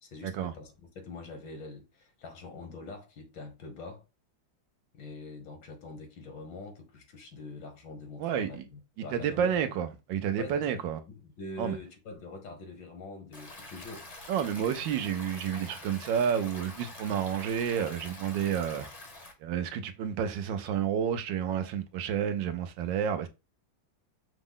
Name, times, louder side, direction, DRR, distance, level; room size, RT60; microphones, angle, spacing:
voice 1, 0.0-4.1 4.9-9.6 10.4-14.1, left 3 dB, 80° left, 1.9 m, -44 dB
voice 2, 9.1-11.0 11.6-11.8 14.3-18.8 19.4-23.3, right 8 dB, 80° right, 1.3 m, -30 dB
Stream, 13.3-19.3, left 2 dB, 35° left, 0.6 m, -46 dB
5.7 x 2.1 x 3.6 m
omnidirectional pair, 2.0 m